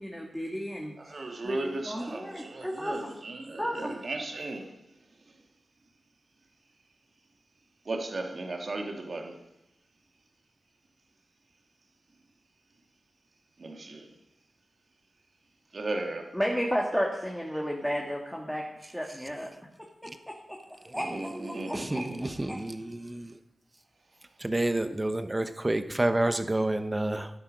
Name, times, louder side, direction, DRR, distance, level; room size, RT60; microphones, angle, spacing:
voice 1, 0.0-0.9 1.4-1.6 1.9-3.1 3.6-4.0 16.3-19.5 20.7-21.3 21.7-21.8 22.5-22.6, equal, ahead, -1 dB, 1.8 m, -32 dB
voice 2, 1.0-4.8 5.3-5.4 7.9-9.4 13.6-14.1 15.7-16.3 20.9-22.4, right 2 dB, 55° right, 3 dB, 2.1 m, -36 dB
voice 3, 21.4-23.3 24.4-27.3, right 1 dB, 20° right, 9 dB, 1.0 m, -29 dB
12.0 x 10.0 x 5.3 m, 0.85 s
wide cardioid pair, 75°, 0 cm